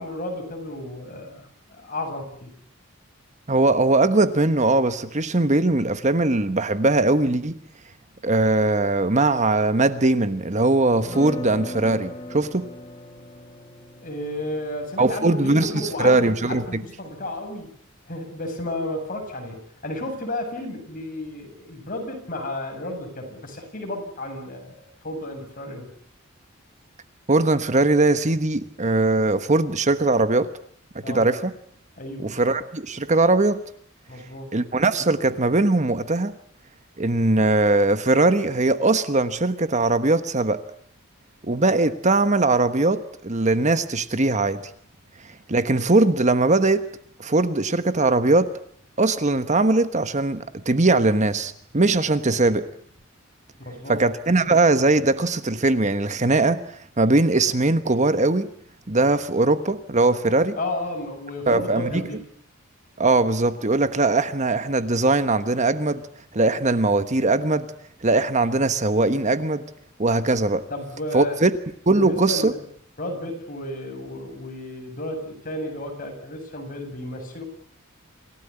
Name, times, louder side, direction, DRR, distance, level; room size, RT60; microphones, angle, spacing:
voice 1, 0.0-2.5 14.0-17.7 18.1-25.9 31.0-31.3 32.0-32.4 34.1-34.5 53.6-54.0 60.6-62.2 70.7-71.5 71.9-72.6 73.0-77.4, left 1 dB, 40° left, 7.6 m, -33 dB
voice 2, 3.5-7.6 8.2-12.6 15.0-16.8 27.3-30.5 30.9-31.5 32.2-33.6 34.5-36.3 37.0-40.6 41.4-44.6 45.5-46.8 47.2-48.5 49.0-52.6 53.9-56.6 57.0-58.5 58.9-60.6 61.5-62.0 63.0-66.0 66.3-67.7 68.0-69.6 70.0-70.7 71.1-71.5 71.9-72.5, right 2 dB, 35° right, 1.2 m, -20 dB
sound 1, 11.0-17.0, left 1 dB, 25° left, 4.5 m, -39 dB
27.5 x 17.0 x 9.9 m
head